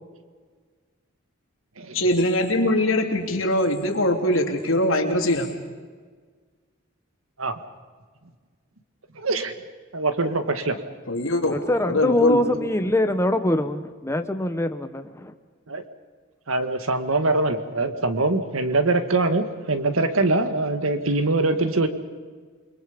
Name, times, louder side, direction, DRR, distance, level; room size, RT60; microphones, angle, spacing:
voice 1, 1.9-5.5 11.1-12.4, left 1 dB, 75° left, 3 dB, 3.1 m, -22 dB
voice 2, 9.2-9.5 9.9-10.8 15.7-15.8 16.5-21.9, right 2 dB, 85° right, 8 dB, 1.9 m, -23 dB
voice 3, 11.5-15.3, left 1 dB, 15° left, 8 dB, 1.1 m, -23 dB
28.5 x 22.5 x 5.3 m, 1.5 s
head